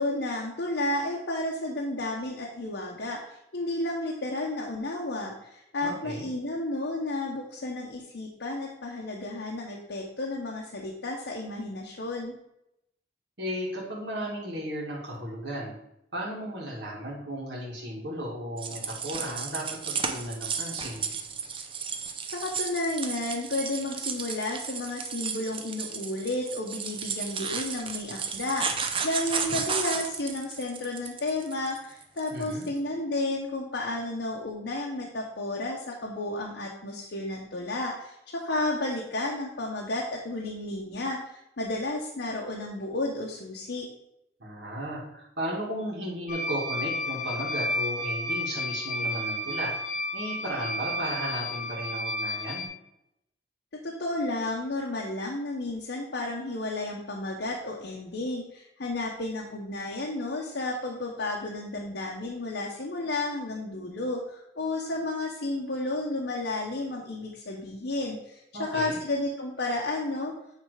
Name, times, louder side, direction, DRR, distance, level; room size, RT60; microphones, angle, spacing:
voice 1, 0.0-12.3 22.3-43.9 53.8-70.3, left 2 dB, 75° left, -2 dB, 1.0 m, -32 dB
voice 2, 5.8-6.3 13.4-15.8 16.1-21.1 32.3-32.7 44.4-49.7 50.1-52.7 68.5-69.0, equal, 80° right, -5 dB, 2.1 m, -35 dB
sound 1, 18.6-32.7, right 6 dB, 30° right, 0.6 m, -33 dB
sound 2, 46.3-52.7, left 1 dB, 45° left, 0.7 m, -32 dB
8.8 x 3.4 x 4.9 m, 0.82 s
head